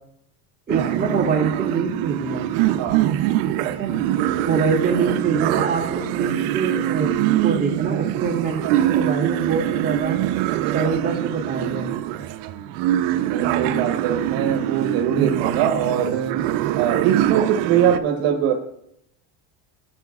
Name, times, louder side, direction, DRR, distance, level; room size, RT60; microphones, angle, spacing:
voice 1, 0.7-2.5 3.6-4.0 4.4-10.2 10.7-11.9, right 5 dB, 20° right, -1 dB, 2.4 m, -25 dB
sound 1, 0.7-18.0, right 13 dB, 80° right, 0.8 m, -23 dB
voice 2, 12.1-12.5 13.3-16.4 16.8-18.5, right 9 dB, 65° right, 3 dB, 1.4 m, -22 dB
17.0 x 9.1 x 2.4 m, 0.74 s
cardioid pair, 140°, 49 cm